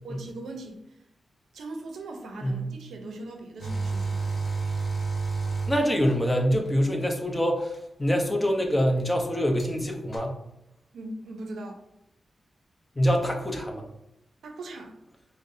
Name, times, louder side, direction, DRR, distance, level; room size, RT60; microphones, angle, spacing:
voice 1, 0.0-0.8 1.5-4.3 10.9-11.8 14.4-15.0, right 2 dB, 90° right, 4 dB, 0.5 m, -39 dB
sound 1, 3.6-6.5 7.7-7.8 9.6-9.7 10.1-10.2, right 4 dB, 40° left, 1.2 m, -29 dB
voice 2, 5.7-10.4 13.0-13.9, equal, 15° left, 2 dB, 0.7 m, -25 dB
5.3 x 2.1 x 2.6 m, 0.82 s
cardioid pair, 80°, 0 cm